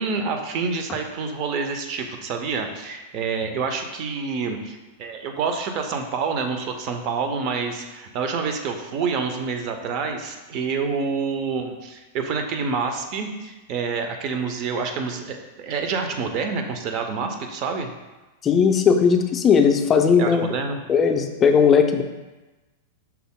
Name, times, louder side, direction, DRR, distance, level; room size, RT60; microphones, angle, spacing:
voice 1, 0.0-17.9 20.2-20.8, right 5 dB, 45° right, 5 dB, 0.5 m, -27 dB
voice 2, 18.4-20.6 20.9-22.0, left 6 dB, 25° left, 5 dB, 0.4 m, -17 dB
5.7 x 2.0 x 3.6 m, 1.1 s
hypercardioid pair, 105°, 0 cm